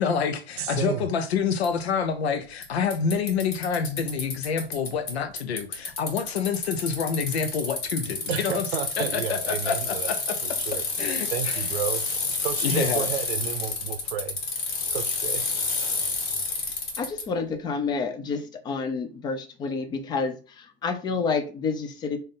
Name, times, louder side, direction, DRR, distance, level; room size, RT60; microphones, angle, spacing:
voice 1, 0.0-8.6 9.0-10.4 11.0-11.6 12.6-13.1, left 6 dB, 85° left, 0.8 m, -27 dB
voice 2, 0.6-1.1 8.3-10.1 10.6-10.8 11.3-14.4 14.9-15.4, right 9 dB, 75° right, 0.7 m, -31 dB
Bicycle, 1.6-1.7 2.6-2.7 2.9-5.1 5.4-17.2, left 4 dB, 65° left, 1.9 m, -29 dB
voice 3, 17.0-22.2, left 4 dB, 15° left, 0.4 m, -29 dB
3.5 x 2.6 x 3.8 m
hypercardioid pair, 130°, 31 cm